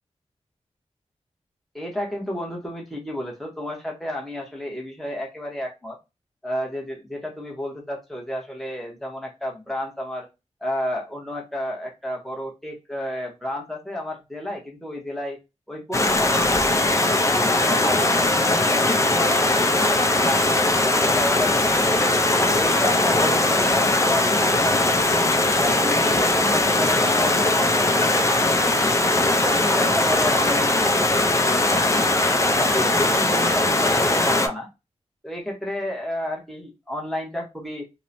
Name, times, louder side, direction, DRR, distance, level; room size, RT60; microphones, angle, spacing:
voice 1, 1.7-6.0 6.4-10.3 10.6-15.4 15.7-16.9 17.3-20.6 20.9-22.0 22.5-25.2 25.6-28.9 29.2-32.1 32.5-34.7 35.2-37.8, left 1 dB, ahead, -2 dB, 0.8 m, -31 dB
Stream, 15.9-34.5, left 2 dB, 25° left, 0.4 m, -20 dB
2.9 x 2.0 x 2.5 m, 0.25 s
wide cardioid pair, 85°, 12 cm